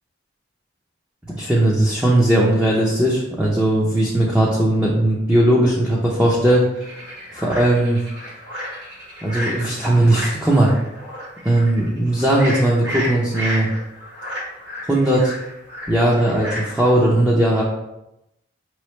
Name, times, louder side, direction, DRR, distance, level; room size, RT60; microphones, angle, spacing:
voice 1, 1.3-6.9 7.3-8.0 9.2-10.7 11.4-13.7 14.9-15.3 15.9-17.6, right 1 dB, 5° right, -5 dB, 0.5 m, -18 dB
sound 1, 6.8-17.0, equal, 60° right, 1.5 m, -32 dB
5.5 x 3.1 x 3.1 m, 0.89 s
head